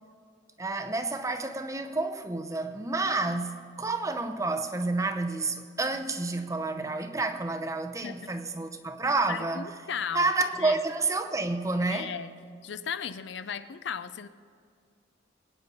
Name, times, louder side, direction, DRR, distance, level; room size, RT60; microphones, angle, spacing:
voice 1, 0.6-9.8 10.1-12.1, right 3 dB, 15° right, 0.6 m, -29 dB
voice 2, 9.3-10.3 10.6-10.8 11.9-12.3 12.6-14.3, left 7 dB, 70° left, 0.5 m, -36 dB
22.5 x 9.5 x 4.1 m
head